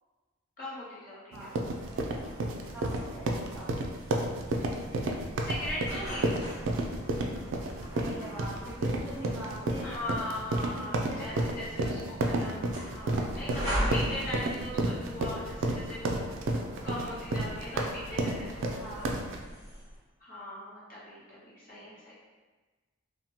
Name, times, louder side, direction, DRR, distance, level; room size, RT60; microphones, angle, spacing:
voice 1, 0.6-1.5 4.6-6.4 9.8-16.2 16.8-19.4 20.2-22.1, left 1 dB, 45° left, -8 dB, 1.0 m, -40 dB
sound 1, 1.3-19.4, right 2 dB, 65° right, 0.3 m, -31 dB
sound 2, 1.6-20.0, equal, 20° right, 0.9 m, -41 dB
voice 2, 2.7-3.7 7.9-10.0 10.7-11.8 18.8-19.1 21.7-21.9, right 1 dB, 5° left, -10 dB, 0.4 m, -43 dB
2.8 x 2.1 x 2.8 m, 1.3 s
head